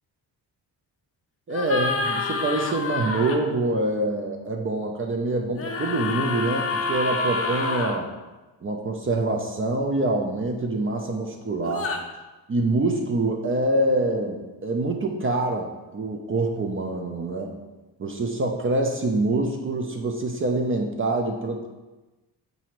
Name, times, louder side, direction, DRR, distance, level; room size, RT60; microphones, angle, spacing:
sound 1, 1.5-3.4 5.6-8.0 11.7-12.0, left 3 dB, 30° left, 0.5 m, -27 dB
voice 1, 1.5-8.1 8.6-11.9 12.5-17.6 18.0-21.7, right 2 dB, 30° right, 2 dB, 0.5 m, -25 dB
4.9 x 2.7 x 3.0 m, 1.1 s
supercardioid pair, 60°, 45 cm